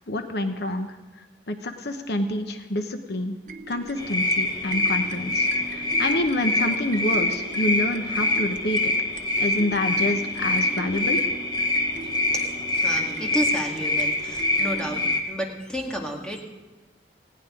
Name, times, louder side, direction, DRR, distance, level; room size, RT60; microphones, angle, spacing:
voice 1, 0.1-0.9 1.5-3.4 3.7-5.5 5.7-8.9 9.4-11.2, left 1 dB, 65° left, 6 dB, 1.0 m, -27 dB
sound 1, 3.5-15.2, right 3 dB, 45° right, 0.8 m, -41 dB
sound 2, 4.0-15.2, left 2 dB, 25° left, 1.3 m, -25 dB
voice 2, 12.3-16.4, equal, 5° left, 0 dB, 2.0 m, -31 dB
19.0 x 16.5 x 3.8 m, 1.2 s
head